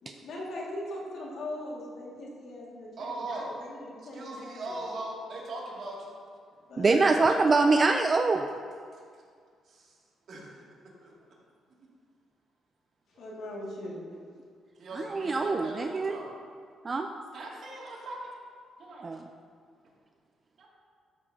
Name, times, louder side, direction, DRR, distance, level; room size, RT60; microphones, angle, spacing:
voice 1, 0.0-4.8 6.7-6.9 13.1-14.1, left 1 dB, 70° left, -3 dB, 2.1 m, -40 dB
voice 2, 3.0-3.5 4.1-6.1 7.3-7.4 8.9-9.0 9.7-9.9 10.3-10.5 11.0-11.1 13.1-13.2 14.8-16.3 17.3-18.3 18.8-19.2 20.6-20.7, right 2 dB, 60° right, -4 dB, 2.4 m, -39 dB
voice 3, 6.8-8.5 15.0-16.2 16.8-17.1 19.0-19.3, right 3 dB, 30° right, 5 dB, 0.4 m, -24 dB
13.0 x 7.0 x 2.8 m, 2.1 s
cardioid pair, 90°, 0 cm